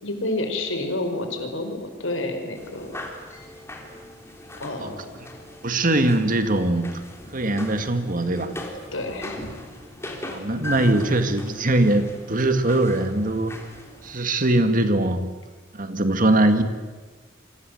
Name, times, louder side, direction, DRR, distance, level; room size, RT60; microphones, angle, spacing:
voice 1, 0.0-3.0 4.6-5.1 8.9-9.5, left 2 dB, 80° left, 5 dB, 4.7 m, -29 dB
sound 1, 2.6-14.2, left 1 dB, 15° left, 3.6 m, -39 dB
voice 2, 5.6-7.0 7.3-8.6 10.2-13.5 14.0-15.2 15.7-16.6, right 1 dB, 45° right, 8 dB, 2.0 m, -21 dB
28.5 x 24.5 x 7.9 m, 1.3 s
head